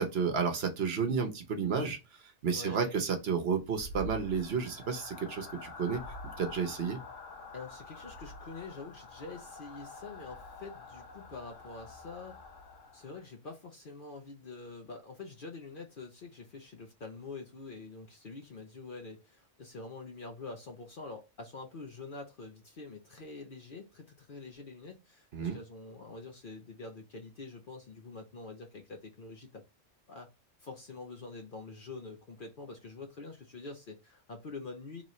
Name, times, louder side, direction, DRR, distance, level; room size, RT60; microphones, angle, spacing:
voice 1, 0.0-2.0 2.2-6.0 6.4-7.0 25.3-25.6, right 6 dB, 60° right, 1.0 m, -31 dB
voice 2, 2.5-3.0 7.5-12.4 12.9-29.6 30.1-30.3 30.6-35.0, left 3 dB, 50° left, 0.8 m, -46 dB
sound 1, 3.3-13.3, left 2 dB, 85° left, 1.3 m, -47 dB
4.0 x 3.1 x 3.0 m
omnidirectional pair, 1.3 m